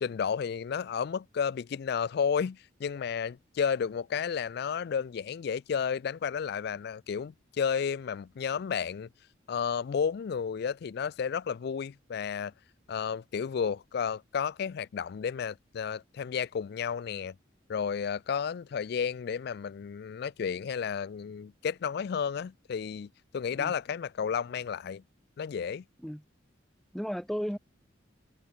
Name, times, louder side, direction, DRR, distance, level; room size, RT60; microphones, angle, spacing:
voice 1, 0.0-9.1 9.5-12.5 12.9-17.4 17.7-25.0 25.4-25.8, left 7 dB, 55° left, 0.3 m, -32 dB
voice 2, 26.9-27.6, equal, ahead, 1.6 m, -34 dB
head